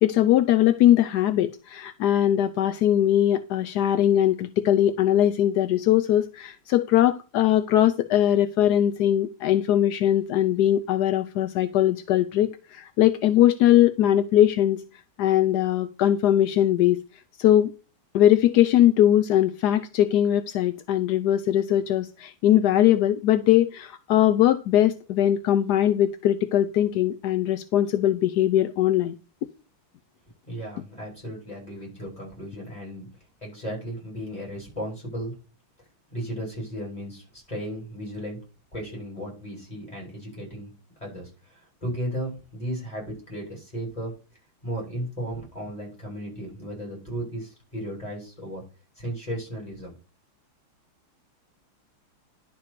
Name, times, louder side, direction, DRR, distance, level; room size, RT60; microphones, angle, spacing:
voice 1, 0.0-14.8 15.2-17.0 17.4-17.7 18.1-29.2, left 12 dB, 70° left, 0.9 m, -21 dB
voice 2, 30.5-33.1 33.4-35.3 36.1-38.4 38.7-40.7 41.0-44.1 44.6-48.6 49.0-49.9, equal, 15° left, 7.1 m, -35 dB
11.0 x 4.3 x 6.6 m
omnidirectional pair, 2.3 m